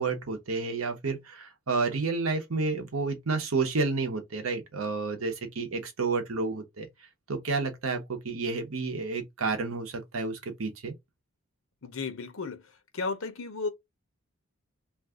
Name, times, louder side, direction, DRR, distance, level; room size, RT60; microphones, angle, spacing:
voice 1, 0.0-6.9 7.3-10.9, right 4 dB, 80° right, 0.9 m, -30 dB
voice 2, 11.8-12.6 12.9-13.7, left 4 dB, 80° left, 0.7 m, -33 dB
2.6 x 2.3 x 3.5 m
head